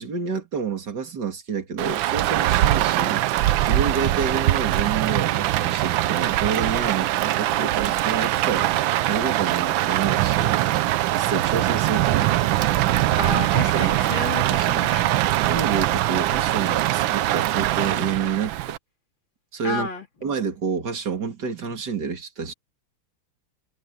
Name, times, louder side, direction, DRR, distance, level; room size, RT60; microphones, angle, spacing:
voice 1, 0.0-10.6 11.1-12.3 13.7-14.0 15.5-18.8 19.5-19.9 20.2-22.5, right 6 dB, 50° right, 3.1 m, -29 dB
Rain, 1.8-18.8, right 14 dB, 70° right, 1.3 m, -22 dB
voice 2, 13.1-15.2 19.6-20.1, left 4 dB, 60° left, 4.3 m, -31 dB
omnidirectional pair, 2.4 m